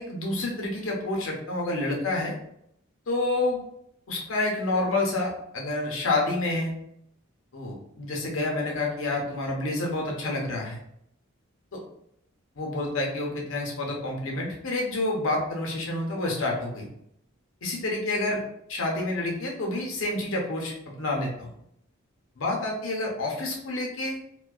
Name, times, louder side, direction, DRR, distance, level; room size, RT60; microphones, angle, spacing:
voice 1, 0.0-2.3 3.1-3.6 4.1-6.7 7.5-10.8 11.7-11.8 12.6-16.9 17.6-18.4 18.7-21.5 22.4-24.2, left 2 dB, 70° left, 0 dB, 0.7 m, -28 dB
2.4 x 2.1 x 2.3 m, 0.73 s
head